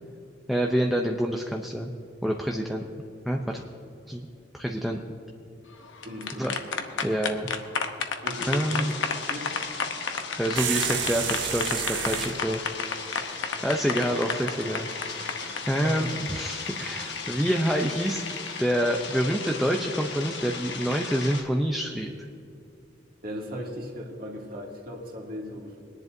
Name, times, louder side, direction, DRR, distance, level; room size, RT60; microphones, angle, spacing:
voice 1, 0.5-1.9 2.2-2.8 3.3-3.6 4.1-4.3 4.5-5.2 6.4-6.5 7.0-7.5 8.5-8.9 10.4-12.6 13.6-15.4 15.7-18.2 18.6-22.1, equal, ahead, 1 dB, 0.5 m, -27 dB
sound 1, 5.8-15.6, left 5 dB, 85° left, 0.9 m, -31 dB
voice 2, 6.0-6.9 8.2-8.9 9.3-9.5 15.6-16.1 23.2-25.8, equal, 50° right, -2 dB, 2.4 m, -37 dB
sound 2, 8.3-21.4, left 5 dB, 70° left, 1.3 m, -37 dB
sound 3, 10.6-12.4, right 9 dB, 80° right, 0.9 m, -30 dB
23.0 x 10.5 x 2.7 m, 2.6 s
head